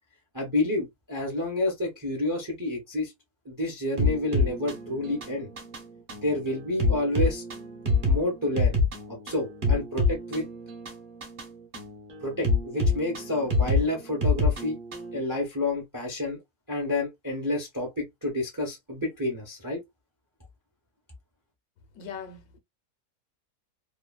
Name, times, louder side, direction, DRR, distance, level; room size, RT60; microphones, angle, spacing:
voice 1, 0.3-3.1 3.4-5.5 6.2-7.4 8.0-8.8 9.1-10.5 12.2-14.8 15.1-16.4 16.7-19.8, left 2 dB, 20° right, 0.5 m, -29 dB
sound 1, 4.0-15.2, left 3 dB, 40° right, 0.8 m, -27 dB
voice 2, 21.9-22.6, left 6 dB, 70° left, 1.2 m, -40 dB
3.0 x 2.2 x 2.2 m
omnidirectional pair, 1.7 m